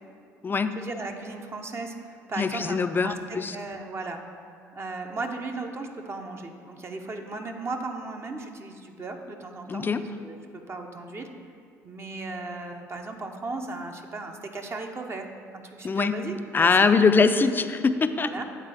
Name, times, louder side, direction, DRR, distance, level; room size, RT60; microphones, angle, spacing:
voice 1, 0.7-4.2 4.7-9.9 10.2-10.4 10.7-11.3 11.8-15.3 15.5-16.9 18.2-18.4, right 3 dB, 30° right, 3 dB, 0.8 m, -36 dB
voice 2, 2.4-3.6 9.7-10.0 15.8-16.1 16.5-18.4, left 4 dB, 25° left, 10 dB, 0.4 m, -22 dB
8.9 x 4.0 x 4.9 m, 2.3 s
hypercardioid pair, 60°, 8 cm